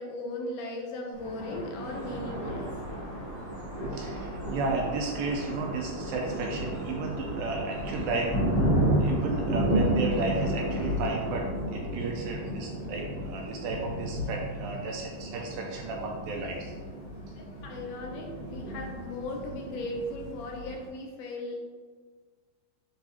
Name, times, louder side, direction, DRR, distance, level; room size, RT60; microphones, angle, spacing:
voice 1, 0.0-2.7 17.4-21.6, left 1 dB, 75° left, 0 dB, 2.6 m, -37 dB
Thunder, 1.1-20.9, equal, 45° left, 2.0 m, -32 dB
sound 1, 1.8-11.4, right 1 dB, 45° right, 0.9 m, -42 dB
voice 2, 3.9-8.4 9.0-16.7, right 3 dB, 80° right, 0 dB, 2.2 m, -33 dB
9.4 x 3.9 x 2.8 m, 1.5 s
omnidirectional pair, 4.4 m